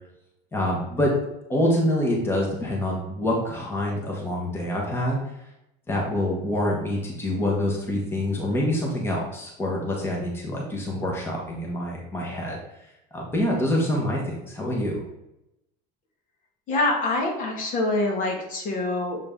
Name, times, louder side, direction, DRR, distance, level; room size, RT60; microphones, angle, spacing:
voice 1, 0.5-1.1 1.5-5.2 5.9-12.6 13.1-15.0, left 1 dB, 10° left, -2 dB, 1.1 m, -26 dB
voice 2, 16.7-19.2, left 2 dB, 45° left, 1 dB, 1.3 m, -25 dB
6.9 x 3.8 x 3.7 m, 0.87 s
cardioid pair, 155°, 19 cm